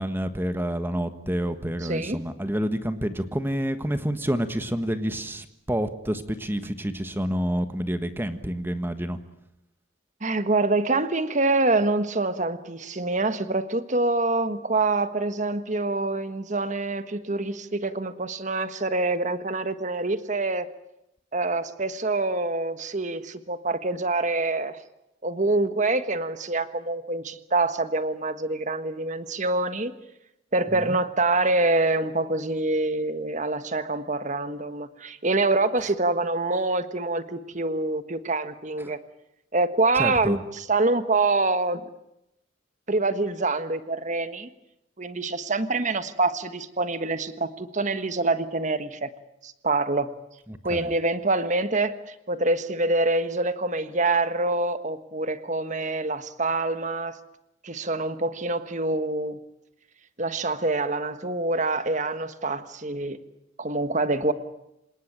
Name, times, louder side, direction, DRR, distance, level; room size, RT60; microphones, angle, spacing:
voice 1, 0.0-9.2 30.7-31.0 39.9-40.4 50.5-50.9, equal, 10° right, 9 dB, 1.4 m, -28 dB
voice 2, 1.8-2.2 10.2-20.7 21.3-24.8 25.2-29.9 30.5-39.0 39.5-41.8 42.9-44.5 45.0-49.1 49.4-50.1 50.6-57.2 57.6-59.4 60.2-63.2 63.6-64.3, right 2 dB, 40° right, 11 dB, 1.5 m, -26 dB
27.5 x 18.5 x 9.0 m, 0.85 s
head